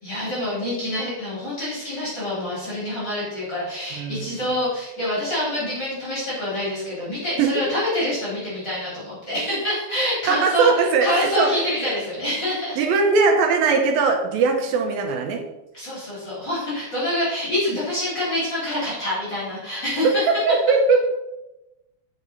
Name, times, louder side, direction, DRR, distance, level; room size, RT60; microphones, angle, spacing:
voice 1, 0.0-12.8 14.4-14.5 15.7-20.2, left 1 dB, 30° left, -8 dB, 4.0 m, -26 dB
voice 2, 3.9-4.6 7.4-7.6 10.3-11.6 12.8-15.4 20.3-21.1, right 4 dB, 75° right, 3 dB, 2.7 m, -20 dB
7.3 x 6.2 x 5.4 m, 0.95 s
omnidirectional pair, 4.4 m